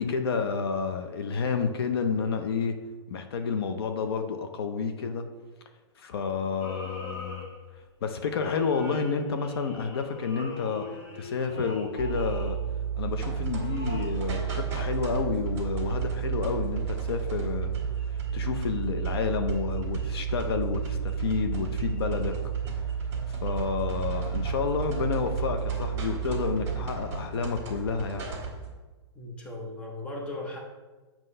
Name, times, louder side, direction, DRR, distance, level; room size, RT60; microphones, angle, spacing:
voice 1, 0.0-2.8 3.1-5.3 6.0-7.5 8.0-10.9 11.1-12.6 13.0-17.7 18.0-22.4 22.9-28.3, left 5 dB, 55° left, 7 dB, 0.7 m, -30 dB
sound 1, 6.6-7.9 8.2-12.8 13.5-14.1, left 2 dB, 35° left, 1.3 m, -41 dB
sound 2, 12.0-26.9, right 8 dB, 75° right, 0.4 m, -32 dB
sound 3, 13.1-28.7, right 3 dB, 15° right, 1.4 m, -38 dB
voice 2, 29.1-30.6, left 2 dB, 5° left, -1 dB, 0.6 m, -37 dB
7.7 x 3.0 x 5.4 m, 1.2 s
hypercardioid pair, 165°, 15 cm